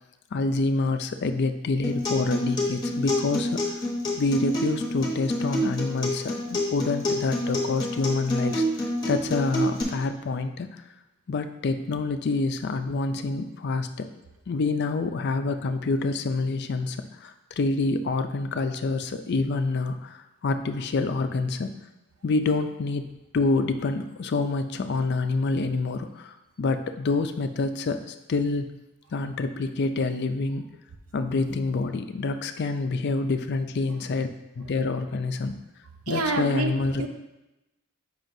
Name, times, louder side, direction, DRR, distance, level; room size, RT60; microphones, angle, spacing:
voice 1, 0.3-3.8 4.2-10.8 11.3-14.1 14.5-21.7 22.2-23.1 23.3-28.7 29.1-30.7 31.1-34.3 34.6-35.5 36.1-37.0, left 3 dB, 50° left, 8 dB, 0.4 m, -27 dB
Acoustic guitar, 1.8-9.8, left 1 dB, 20° left, 1.1 m, -28 dB
voice 2, 36.1-36.7 37.0-37.1, right 3 dB, 85° right, 5 dB, 0.7 m, -26 dB
7.5 x 5.4 x 2.6 m, 0.97 s
head